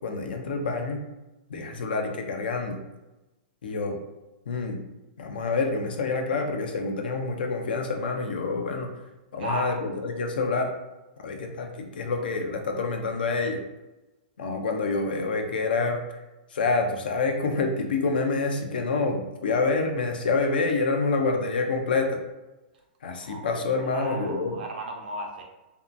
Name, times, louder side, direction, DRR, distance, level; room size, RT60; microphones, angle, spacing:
voice 1, 0.0-1.1 1.5-2.8 3.6-4.0 4.5-4.8 5.2-8.9 9.3-10.7 11.2-13.6 14.4-16.2 16.5-22.2 23.0-24.6, left 3 dB, 80° left, 3 dB, 0.5 m, -27 dB
voice 2, 9.4-9.8 23.2-23.4 23.7-25.4, right 2 dB, 70° right, 1 dB, 0.6 m, -35 dB
2.7 x 2.2 x 2.4 m, 1.0 s
hypercardioid pair, 130°, 5 cm